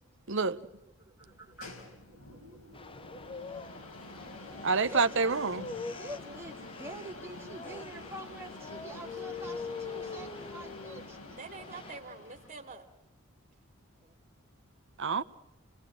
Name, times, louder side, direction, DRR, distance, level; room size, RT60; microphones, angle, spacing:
voice 1, 1.0-1.8 4.9-5.4 6.0-11.2 11.7-11.9 14.0-14.2, right 1 dB, 10° right, 2.4 m, -46 dB
sound 1, 1.2-12.8, left 2 dB, 90° left, 5.0 m, -48 dB
sound 2, 2.7-12.0, left 4 dB, 25° left, 0.8 m, -44 dB
voice 2, 4.6-5.7 15.0-15.2, right 4 dB, 60° right, 1.0 m, -27 dB
voice 3, 8.9-10.3 11.3-12.9, right 4 dB, 35° right, 2.8 m, -48 dB
29.5 x 19.5 x 7.7 m
head